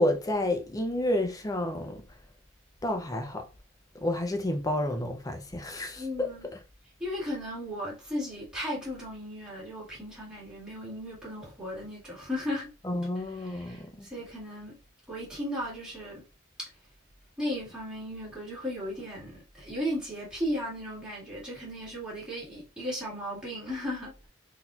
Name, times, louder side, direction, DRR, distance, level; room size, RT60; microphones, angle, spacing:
voice 1, 0.0-2.1 2.8-3.5 4.0-6.3 12.8-14.1, left 1 dB, 20° left, 0.5 m, -30 dB
voice 2, 6.0-6.5 7.0-12.7 13.4-14.8 15.1-16.3 16.6-16.7 17.4-24.1, equal, 5° right, 1.9 m, -36 dB
4.0 x 2.7 x 2.4 m
head